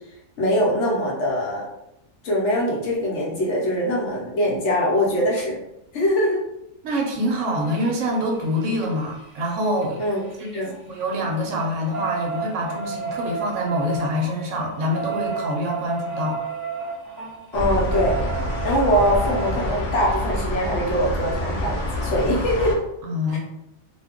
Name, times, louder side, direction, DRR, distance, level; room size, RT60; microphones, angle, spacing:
voice 1, 0.4-1.7 2.2-5.6 5.9-6.4 10.0-10.2 10.5-10.7 17.5-18.2 18.6-21.8 22.0-22.8 23.3-23.4, equal, 60° left, -2 dB, 0.9 m, -22 dB
sound 1, 5.3-5.4 7.1-10.6 10.9-19.6 21.3-21.4 21.7-21.8 22.1-22.2, right 5 dB, 25° right, 0.4 m, -33 dB
voice 2, 6.8-10.0 10.4-16.4 23.0-23.4, equal, 70° right, 0 dB, 0.9 m, -25 dB
sound 2, 17.5-22.7, left 1 dB, 80° left, 0.4 m, -27 dB
2.5 x 2.2 x 3.5 m, 0.85 s
omnidirectional pair, 1.4 m